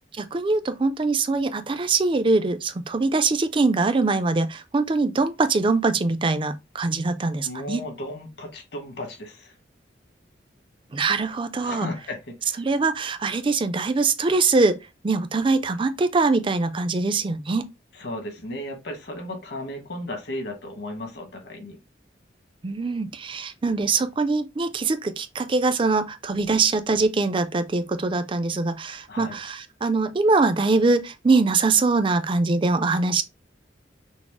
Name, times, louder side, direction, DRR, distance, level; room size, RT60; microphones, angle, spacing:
voice 1, 0.2-7.8 10.9-11.9 12.6-14.8 15.0-17.6 22.6-33.2, right 3 dB, 25° right, 0.4 m, -23 dB
voice 2, 7.4-9.5 11.6-12.6 18.0-21.8 29.1-29.4, left 1 dB, 60° left, 1.4 m, -35 dB
6.0 x 2.0 x 3.6 m
head